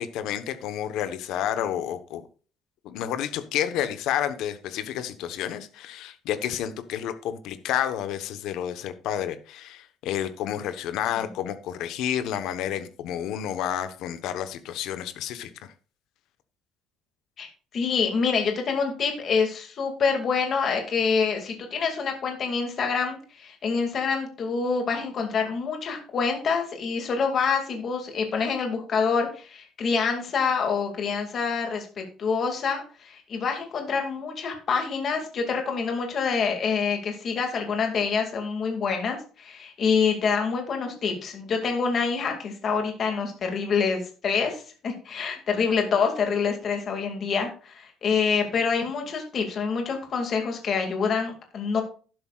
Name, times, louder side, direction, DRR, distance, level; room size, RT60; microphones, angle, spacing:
voice 1, 0.0-2.3 2.8-15.7, left 10 dB, 65° left, 1.1 m, -30 dB
voice 2, 17.7-31.9 32.2-51.8, left 5 dB, 35° left, 2.3 m, -26 dB
12.0 x 11.0 x 2.4 m
cardioid pair, 175°, 0 cm